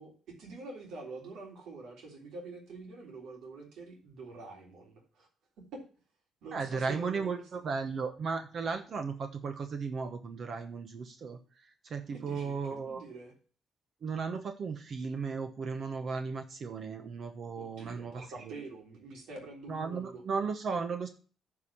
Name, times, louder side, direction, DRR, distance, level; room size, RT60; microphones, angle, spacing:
voice 1, 0.0-5.3 5.7-5.8 6.4-7.5 12.1-13.3 17.5-20.2, right 3 dB, 80° right, 1 dB, 3.3 m, -46 dB
voice 2, 6.5-11.4 11.8-13.0 14.0-18.5 19.7-21.1, right 5 dB, 55° right, 7 dB, 1.1 m, -35 dB
9.6 x 4.9 x 7.1 m, 0.39 s
cardioid pair, 90°, 0 cm